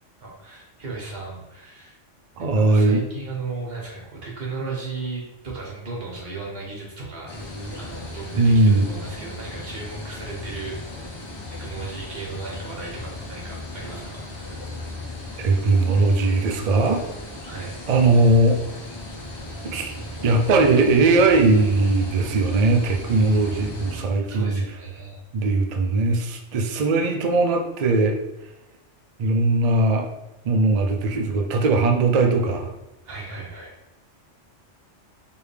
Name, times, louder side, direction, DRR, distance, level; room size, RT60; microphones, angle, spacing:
voice 1, 0.2-2.0 2.4-7.4 7.7-10.8 11.5-14.6 17.5-17.8 23.1-23.7 24.2-25.2 33.0-33.7, right 3 dB, 55° right, -2 dB, 1.3 m, -36 dB
voice 2, 2.4-3.0 8.3-8.9 15.4-17.0 17.9-18.6 19.6-20.0 20.2-24.6 25.3-28.2 29.2-30.1 30.4-32.7, right 2 dB, 70° right, 3 dB, 0.3 m, -19 dB
sound 1, 7.3-24.0, left 1 dB, 40° left, 0.3 m, -36 dB
4.8 x 2.6 x 3.3 m, 0.92 s
omnidirectional pair, 1.2 m